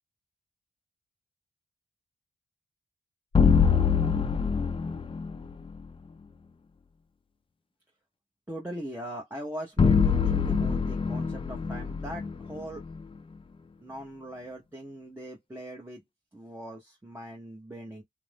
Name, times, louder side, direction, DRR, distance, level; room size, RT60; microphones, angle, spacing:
sound 1, 3.3-5.5 9.8-13.0, left 6 dB, 30° left, 0.4 m, -24 dB
voice 1, 8.5-12.8 13.8-16.0 16.3-18.0, right 1 dB, 15° right, 0.8 m, -40 dB
2.5 x 2.0 x 3.3 m
cardioid pair, 70°, 17 cm